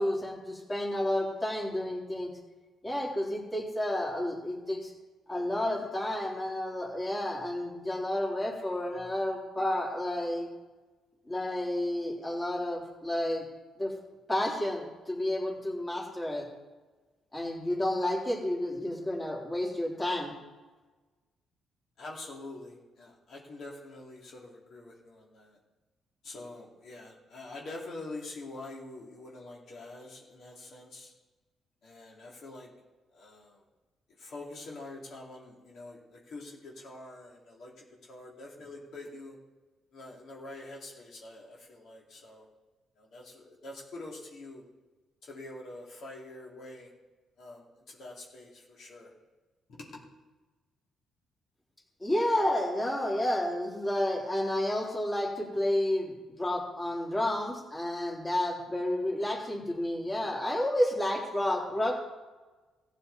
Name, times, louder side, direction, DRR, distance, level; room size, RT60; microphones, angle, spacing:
voice 1, 0.0-2.3 2.8-4.9 5.3-10.5 11.3-13.4 13.8-13.9 14.3-16.5 17.3-20.3 52.0-62.0, left 1 dB, 20° left, -2 dB, 3.4 m, -31 dB
voice 2, 22.0-25.5 26.2-31.1 31.8-32.7 33.1-33.6 34.2-39.4 39.9-42.4 43.0-44.6 45.2-46.9 47.4-49.1 49.7-49.9, left 2 dB, 65° left, -3 dB, 2.8 m, -45 dB
14.5 x 9.4 x 4.1 m, 1.3 s
cardioid pair, 90°, 0 cm